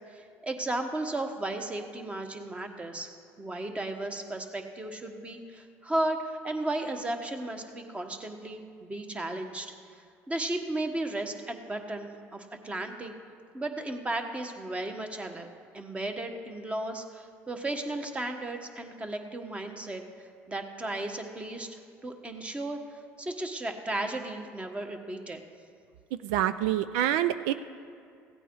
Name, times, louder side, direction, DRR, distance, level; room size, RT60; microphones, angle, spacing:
voice 1, 0.1-3.1 3.4-9.7 10.3-13.1 13.5-15.5 15.7-22.8 23.2-25.4, right 2 dB, 20° right, 5 dB, 1.4 m, -35 dB
voice 2, 26.2-27.5, right 12 dB, 85° right, 12 dB, 0.4 m, -26 dB
16.0 x 8.9 x 4.7 m, 2.3 s
supercardioid pair, 85°, 6 cm